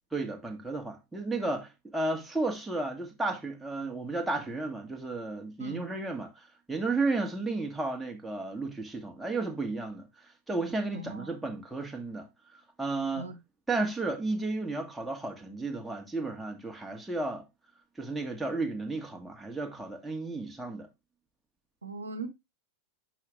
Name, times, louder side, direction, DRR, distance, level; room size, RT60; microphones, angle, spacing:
voice 1, 0.1-10.1 10.5-12.3 12.8-13.3 13.7-17.4 18.0-20.9, right 3 dB, 5° right, 1.5 m, -33 dB
voice 2, 10.9-11.3 13.1-13.4 21.8-22.3, right 3 dB, 75° right, 0.9 m, -39 dB
6.3 x 5.5 x 3.4 m
figure-of-eight pair, 90°, 0 cm